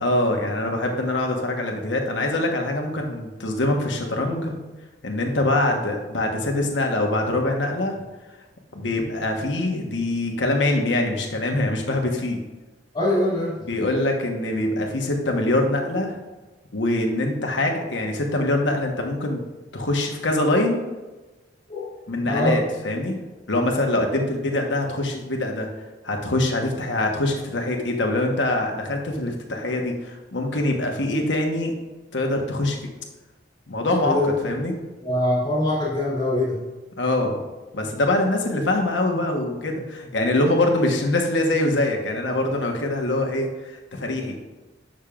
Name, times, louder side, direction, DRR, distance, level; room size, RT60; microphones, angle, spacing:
voice 1, 0.0-4.6 5.0-8.0 8.7-12.4 13.7-16.2 16.7-19.4 19.7-20.8 22.1-23.2 23.5-25.7 26.0-31.7 32.1-32.9 33.7-34.7 37.0-37.4 37.7-44.3, left 1 dB, 75° left, 2 dB, 1.1 m, -24 dB
voice 2, 12.9-13.6 21.7-21.9 22.3-22.6 34.0-34.4 35.0-36.6, left 1 dB, 25° left, -7 dB, 2.1 m, -23 dB
8.6 x 6.3 x 2.4 m, 1.1 s
head